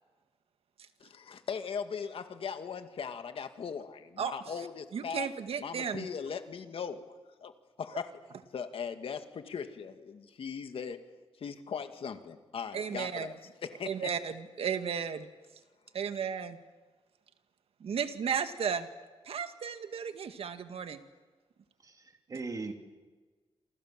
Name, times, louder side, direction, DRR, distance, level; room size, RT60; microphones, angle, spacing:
voice 1, 1.0-5.3 5.6-7.0 7.4-7.5 7.8-8.1 8.5-11.0 11.4-13.3 13.6-14.1, left 6 dB, 65° left, 8 dB, 2.1 m, -39 dB
voice 2, 4.9-6.1 12.7-13.3 13.9-15.3 15.9-16.6 17.8-18.9 19.2-21.0, right 7 dB, 70° right, 8 dB, 1.9 m, -34 dB
voice 3, 21.8-22.7, right 3 dB, 35° right, 5 dB, 2.9 m, -39 dB
28.5 x 27.5 x 7.6 m, 1.3 s
wide cardioid pair, 145°, 10 cm